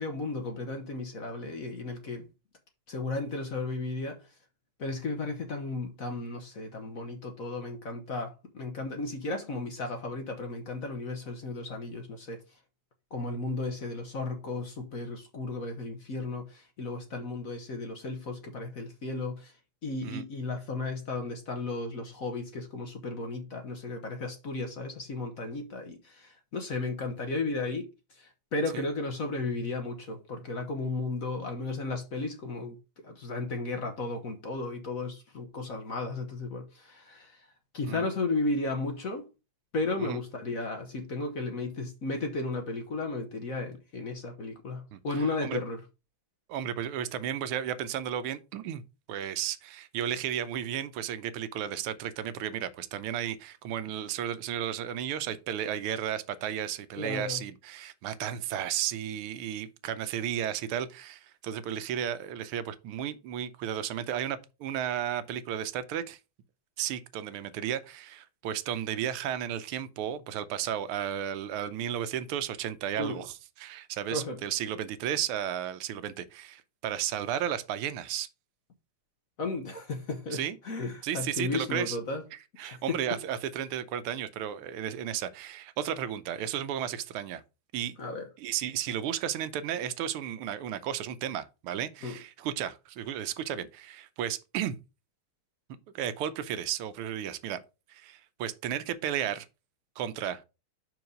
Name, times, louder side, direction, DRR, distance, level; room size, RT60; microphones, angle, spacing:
voice 1, 0.0-2.3 2.9-4.2 4.8-12.4 13.1-19.5 19.8-27.9 28.2-32.8 33.0-37.5 37.7-39.3 39.7-45.8 57.0-57.4 73.0-73.2 74.1-74.4 79.4-82.2 82.6-83.2 88.0-88.2 92.0-92.2, left 3 dB, 50° left, 1.1 m, -34 dB
voice 2, 44.9-45.6 46.5-48.8 49.1-66.2 66.8-78.3 80.3-80.6 81.0-82.0 82.6-87.4 87.7-88.0 88.4-94.8 95.9-97.6 97.9-99.5 100.0-100.4, right 10 dB, 85° right, 1.5 m, -33 dB
5.6 x 4.7 x 5.1 m
omnidirectional pair, 2.4 m